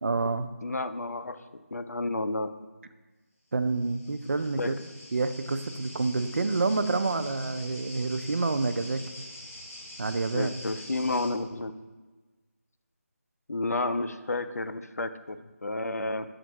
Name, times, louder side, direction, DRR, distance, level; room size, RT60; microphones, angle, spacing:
voice 1, 0.0-0.5 3.5-4.7 5.1-9.0 10.0-10.5, right 3 dB, 55° right, 10 dB, 0.4 m, -28 dB
voice 2, 0.6-2.5 4.6-4.8 10.3-11.7 13.5-16.3, left 2 dB, 80° left, 11 dB, 0.5 m, -31 dB
sound 1, 3.6-11.3, equal, 15° left, 1.1 m, -45 dB
7.1 x 2.5 x 5.7 m, 1.2 s
figure-of-eight pair, 165°, 8 cm